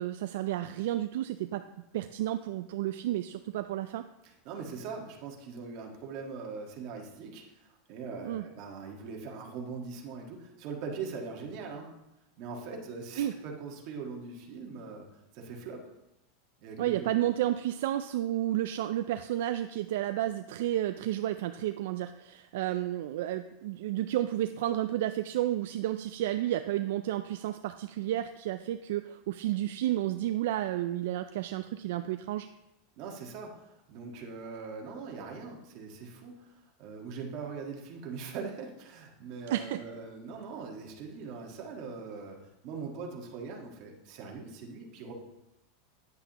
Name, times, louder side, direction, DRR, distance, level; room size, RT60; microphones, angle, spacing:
voice 1, 0.0-1.6 1.9-4.0 8.2-8.4 13.2-13.3 16.8-32.5 39.5-39.8, right 13 dB, 70° right, 9 dB, 0.3 m, -31 dB
voice 2, 4.2-11.9 12.4-15.1 15.3-15.8 16.6-17.1 33.0-42.4 42.6-45.1, right 5 dB, 45° right, 0 dB, 1.5 m, -41 dB
9.5 x 8.1 x 2.9 m, 0.90 s
supercardioid pair, 155°, 0 cm